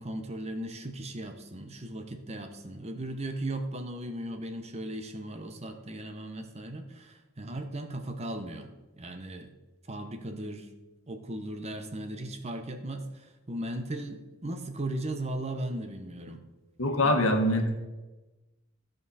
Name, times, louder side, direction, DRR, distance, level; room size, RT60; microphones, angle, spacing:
voice 1, 0.0-8.7 9.0-9.5 9.9-10.7 11.1-16.4 17.0-17.2, right 1 dB, 30° right, 6 dB, 0.8 m, -37 dB
voice 2, 16.8-17.7, left 1 dB, 70° left, 4 dB, 1.4 m, -24 dB
15.0 x 5.3 x 4.2 m, 1.1 s
head